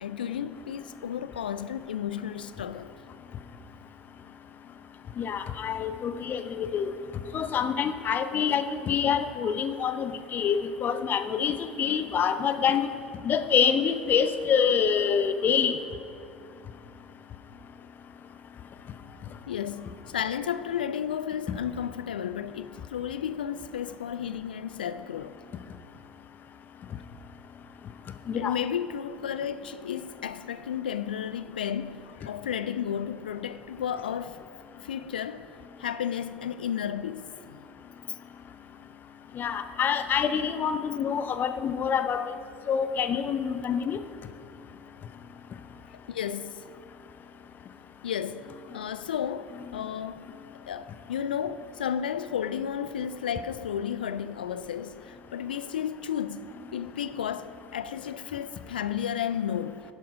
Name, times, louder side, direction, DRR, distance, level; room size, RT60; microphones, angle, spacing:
voice 1, 0.0-2.9 19.5-25.4 28.4-34.4 34.8-35.5 35.8-37.6 46.1-46.6 48.0-50.3 50.7-59.8, left 9 dB, 75° left, 0.4 m, -33 dB
voice 2, 5.2-6.9 7.3-12.9 13.2-15.8 28.3-28.5 39.3-42.3 42.7-44.0, left 7 dB, 40° left, 0.8 m, -26 dB
11.5 x 10.5 x 4.9 m
figure-of-eight pair, 65°, 5 cm